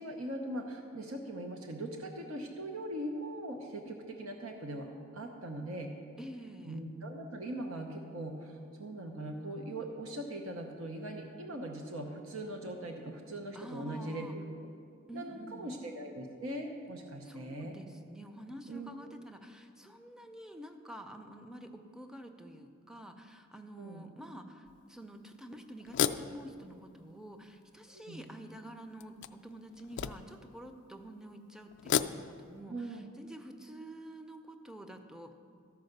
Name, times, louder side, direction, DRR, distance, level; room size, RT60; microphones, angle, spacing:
voice 1, 0.0-4.9 5.1-5.9 6.6-14.4 15.1-17.8 18.7-18.9 23.8-24.1 27.9-28.2 32.7-33.1, right 1 dB, 85° right, 3 dB, 0.8 m, -40 dB
voice 2, 6.2-6.8 13.5-14.3 15.1-15.8 17.2-35.3, right 1 dB, 5° right, 6 dB, 0.5 m, -48 dB
sound 1, 24.7-24.8 25.8-27.2 27.8-27.9 29.0-30.5 31.7-32.6, left 9 dB, 55° left, 0.3 m, -34 dB
13.0 x 4.8 x 6.6 m, 2.3 s
head